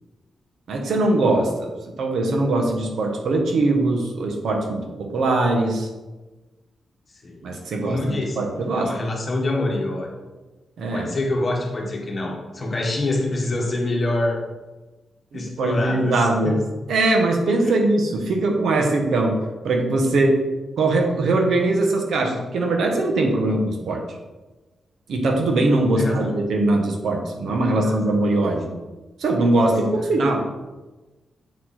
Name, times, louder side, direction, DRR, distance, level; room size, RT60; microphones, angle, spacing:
voice 1, 0.7-1.7 2.0-5.9 7.4-8.9 10.8-11.1 15.3-20.4 20.8-24.0 25.1-28.7 29.2-30.4, right 2 dB, 70° right, 3 dB, 1.2 m, -21 dB
voice 2, 7.8-8.4 8.7-10.1 10.9-14.4 15.3-16.6 17.6-17.7 26.0-26.3 27.7-28.0, left 2 dB, 30° left, -1 dB, 1.5 m, -26 dB
8.3 x 4.7 x 4.3 m, 1.2 s
wide cardioid pair, 160°, 0 cm